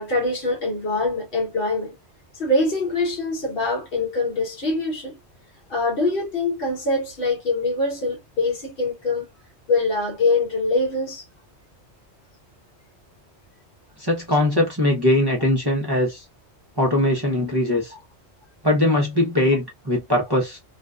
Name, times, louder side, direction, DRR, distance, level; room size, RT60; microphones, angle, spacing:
voice 1, 0.0-2.0 2.3-5.2 5.7-9.3 9.7-11.2 17.9-18.0, left 2 dB, 55° left, 1.1 m, -24 dB
voice 2, 14.0-16.2 16.8-17.9 18.6-20.6, left 1 dB, 25° right, 0.7 m, -21 dB
2.6 x 2.2 x 2.3 m
omnidirectional pair, 1.2 m